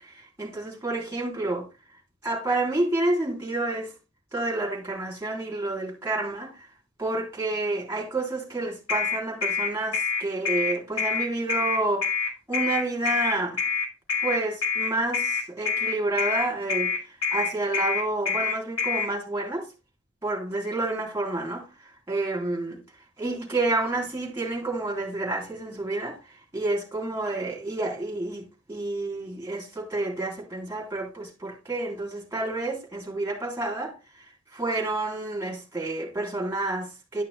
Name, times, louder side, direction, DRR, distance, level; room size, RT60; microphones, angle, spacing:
voice 1, 0.4-1.7 2.2-3.9 4.3-6.6 7.0-12.1 12.5-13.7 14.2-19.7 20.2-21.7 22.1-22.8 23.2-26.2 26.5-33.9 34.5-37.2, right 2 dB, 15° right, 3.4 m, -29 dB
sound 1, 8.9-19.1, left 5 dB, 80° left, 3.0 m, -26 dB
11.5 x 5.9 x 3.4 m
head